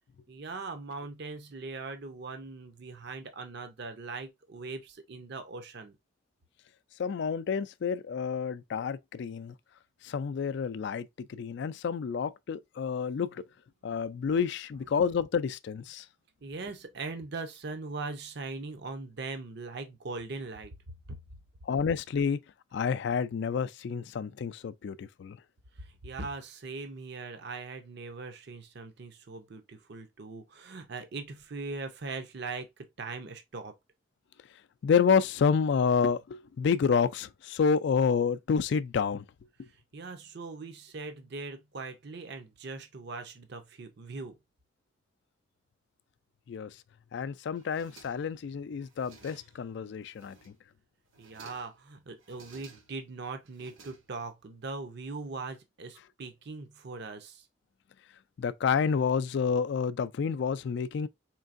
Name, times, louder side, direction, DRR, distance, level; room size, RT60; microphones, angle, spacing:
voice 1, 0.3-6.0 16.4-20.7 21.1-21.2 25.8-33.7 39.9-44.4 51.2-57.5, right 3 dB, 55° right, 0.6 m, -40 dB
voice 2, 7.0-9.5 10.0-13.4 13.8-16.1 21.7-22.4 22.7-25.4 34.8-39.3 39.6-39.7 46.5-46.7 47.1-50.5 58.4-61.1, left 6 dB, 60° left, 0.3 m, -29 dB
sound 1, 47.5-48.4 48.8-49.7 50.1-50.7 51.1-51.8 52.2-53.1 53.5-54.4, right 4 dB, 75° right, 1.0 m, -56 dB
4.5 x 3.3 x 2.5 m
head